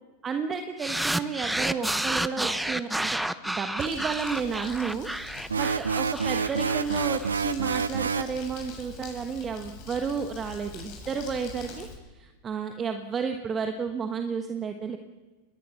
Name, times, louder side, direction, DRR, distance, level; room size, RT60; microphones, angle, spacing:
voice 1, 0.2-3.2 3.4-5.1 5.6-11.9 12.1-15.0, right 5 dB, 25° right, 6 dB, 1.4 m, -32 dB
sound 1, 0.8-7.3, right 1 dB, 5° right, 0.8 m, -30 dB
Crumpling crinkling, 3.8-11.9, left 5 dB, 50° left, 6.7 m, -44 dB
sound 2, 5.5-8.4, right 5 dB, 85° right, 0.6 m, -28 dB
26.0 x 20.5 x 6.0 m, 1.3 s
hypercardioid pair, 95°, 0 cm